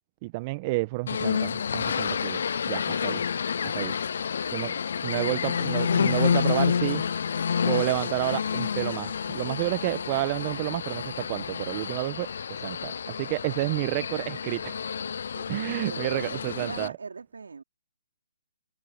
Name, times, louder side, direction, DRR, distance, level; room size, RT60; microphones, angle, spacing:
voice 1, 0.2-3.2 3.6-3.9 4.5-7.0 7.6-14.8 15.5-16.9, right 23 dB, 30° right, 1.4 m, -30 dB
sound 1, 1.1-16.9, left 7 dB, 60° left, 0.4 m, -29 dB
voice 2, 2.9-3.2 15.3-17.6, right 5 dB, 70° right, 4.4 m, -41 dB
figure-of-eight pair, 135°, 0 cm